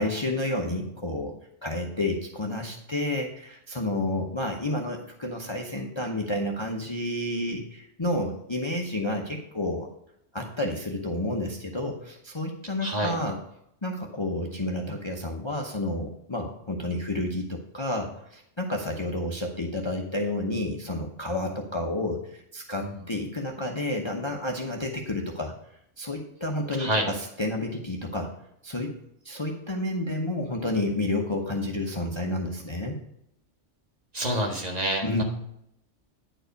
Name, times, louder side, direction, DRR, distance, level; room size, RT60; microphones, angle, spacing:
voice 1, 0.0-1.4 1.6-9.9 10.3-13.4 13.8-25.5 26.0-28.3 28.6-28.9 29.2-33.0 35.0-35.2, left 1 dB, 25° left, 1 dB, 0.8 m, -30 dB
voice 2, 12.8-13.1 22.8-23.0 26.8-27.1 34.1-35.2, right 1 dB, 35° right, 1 dB, 1.7 m, -28 dB
9.9 x 4.8 x 5.1 m, 0.77 s
omnidirectional pair, 1.2 m